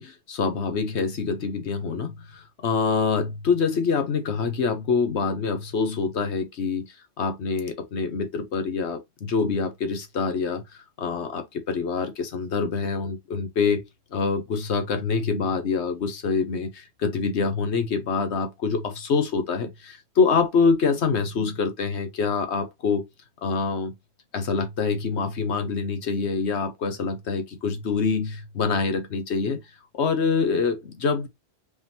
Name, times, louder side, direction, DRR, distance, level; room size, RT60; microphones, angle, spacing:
voice 1, 0.0-10.6 11.0-23.1 23.4-23.9 24.3-29.6 29.9-31.3, left 5 dB, 80° left, 1.2 m, -25 dB
5.1 x 3.5 x 2.7 m
omnidirectional pair, 1.1 m